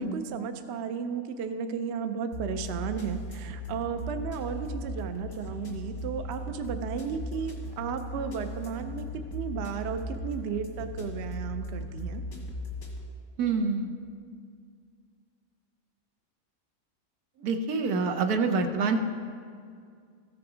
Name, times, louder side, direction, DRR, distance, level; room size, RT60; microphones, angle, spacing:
voice 1, 0.0-9.1 9.3-12.2, right 6 dB, 60° right, 8 dB, 0.7 m, -34 dB
sound 1, 2.3-13.0, left 1 dB, 80° left, 2.1 m, -37 dB
voice 2, 13.4-13.9 17.4-19.0, right 4 dB, 85° right, 5 dB, 1.3 m, -26 dB
14.0 x 6.0 x 4.9 m, 2.2 s
omnidirectional pair, 1.6 m